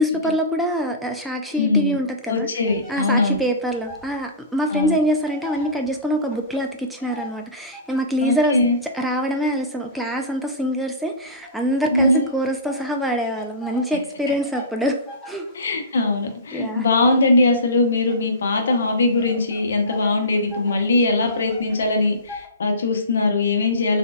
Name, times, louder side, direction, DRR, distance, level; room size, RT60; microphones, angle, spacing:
voice 1, 0.0-2.5 2.9-8.6 8.9-15.0 15.3-15.5 16.5-16.9, equal, 5° right, 2 dB, 0.4 m, -24 dB
voice 2, 1.5-2.0 2.3-3.4 4.7-5.0 8.2-8.8 11.9-12.2 15.5-24.0, left 2 dB, 65° left, 4 dB, 0.9 m, -20 dB
sound 1, 2.6-4.2 4.5-8.1 8.7-10.8 11.4-22.5, left 2 dB, 15° left, 1.1 m, -41 dB
3.8 x 3.5 x 2.3 m, 0.67 s
figure-of-eight pair, 125°, 0 cm